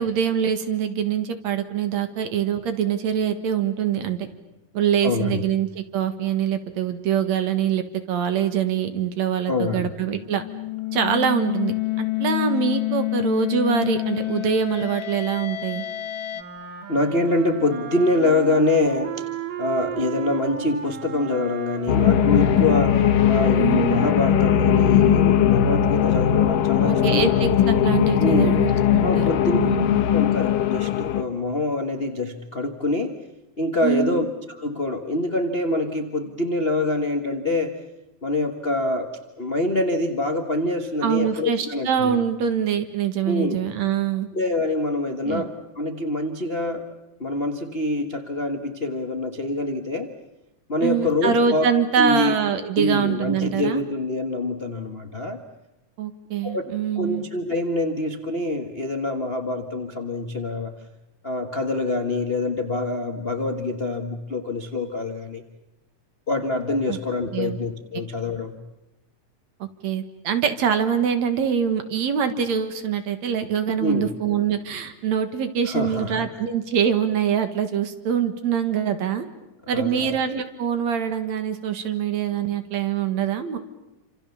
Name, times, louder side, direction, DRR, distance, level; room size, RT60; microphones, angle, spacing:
voice 1, 0.0-4.3 4.7-10.4 10.9-15.9 23.5-24.1 26.8-29.3 29.5-30.0 33.8-34.2 41.0-44.3 45.2-45.4 50.8-53.8 56.0-57.2 66.9-67.0 67.3-67.6 69.6-79.3 79.7-83.6, right 8 dB, 60° right, 9 dB, 2.7 m, -24 dB
voice 2, 5.0-5.4 9.5-9.9 16.9-19.3 19.6-27.4 28.2-28.6 29.0-33.1 33.6-34.3 34.6-37.7 38.2-39.1 39.4-42.2 43.3-43.6 44.3-46.9 47.2-50.1 50.7-51.7 52.0-52.3 52.8-55.4 56.4-56.6 57.0-60.7 61.2-65.4 66.3-68.6 73.8-74.1 75.7-76.3 79.7-80.2, left 2 dB, 70° left, 6 dB, 0.5 m, -25 dB
sound 1, 10.1-16.4, left 18 dB, 50° left, 1.6 m, -28 dB
Wind instrument woodwind instrument, 16.3-23.7, right 7 dB, 85° right, 3.4 m, -35 dB
sound 2, 21.9-31.2, left 9 dB, 85° left, 2.8 m, -19 dB
28.0 x 27.0 x 7.1 m, 0.96 s
omnidirectional pair, 3.8 m